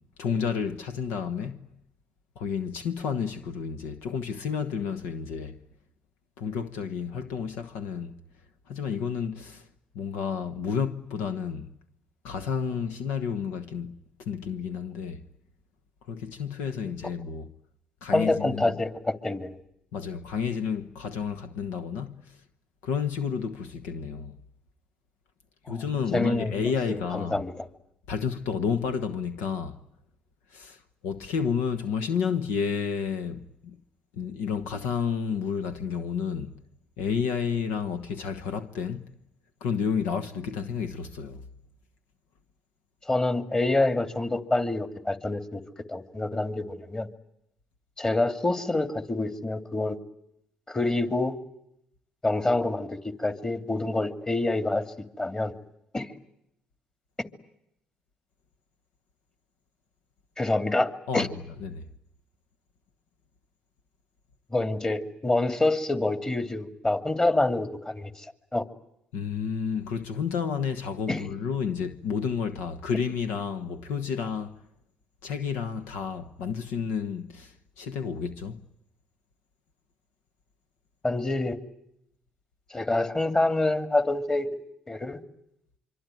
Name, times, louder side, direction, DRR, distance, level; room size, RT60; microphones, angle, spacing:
voice 1, 0.2-1.7 2.4-5.6 6.4-8.1 8.7-9.7 9.9-11.7 12.2-13.9 14.2-15.2 16.1-17.5 18.0-18.7 19.9-22.3 22.8-24.4 25.7-27.4 28.1-29.8 30.5-33.7 34.2-36.5 37.0-39.1 39.6-41.4 61.1-61.3 61.6-61.9 69.1-74.5 75.2-78.6, left 6 dB, 85° left, 1.3 m, -31 dB
voice 2, 18.1-19.6 25.7-25.8 26.1-26.5 26.9-27.7 43.1-45.6 45.9-47.1 48.0-50.0 50.7-51.4 52.2-54.8 55.2-55.5 55.9-56.1 60.4-61.3 64.5-68.1 68.5-68.6 71.1-71.2 81.0-81.6 82.7-84.5 84.9-85.2, left 2 dB, 25° left, 2.7 m, -26 dB
25.0 x 25.0 x 9.2 m
supercardioid pair, 60°, 3 cm